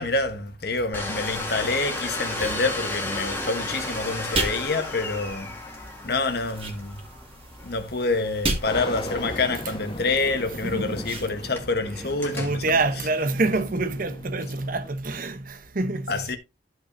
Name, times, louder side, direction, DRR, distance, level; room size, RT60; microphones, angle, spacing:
voice 1, 0.0-5.5 6.0-7.0 7.6-13.1 16.1-16.4, left 3 dB, 55° left, 1.3 m, -27 dB
Domestic sounds home sounds, 0.9-14.0, left 2 dB, 10° left, 1.9 m, -35 dB
sound 1, 1.2-11.3, right 2 dB, 30° right, 2.1 m, -36 dB
sound 2, 8.7-14.9, left 1 dB, 25° left, 1.3 m, -38 dB
voice 2, 10.6-11.6 11.9-16.4, right 2 dB, 50° right, 0.9 m, -27 dB
13.0 x 5.7 x 2.7 m
head